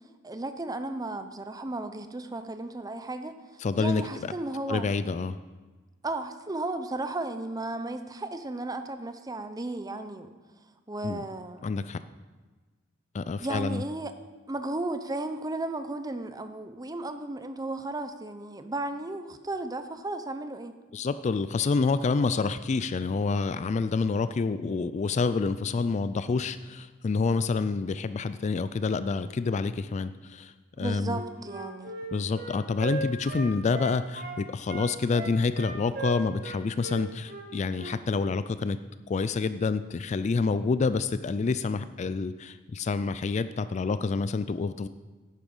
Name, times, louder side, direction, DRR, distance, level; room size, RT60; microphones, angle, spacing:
voice 1, 0.2-3.3 3.8-4.9 6.0-10.3 10.9-11.6 13.4-14.1 14.5-20.7 30.8-31.9, right 2 dB, 20° right, 9 dB, 0.7 m, -34 dB
voice 2, 3.6-4.3 4.7-5.4 11.0-11.2 11.6-12.0 13.1-13.8 20.9-31.2 32.1-38.8 39.1-44.9, left 4 dB, 35° left, 13 dB, 0.3 m, -28 dB
Wind instrument woodwind instrument, 31.0-34.4 34.7-38.0, right 3 dB, 50° right, 1.6 m, -37 dB
11.0 x 8.8 x 5.4 m, 1.3 s
head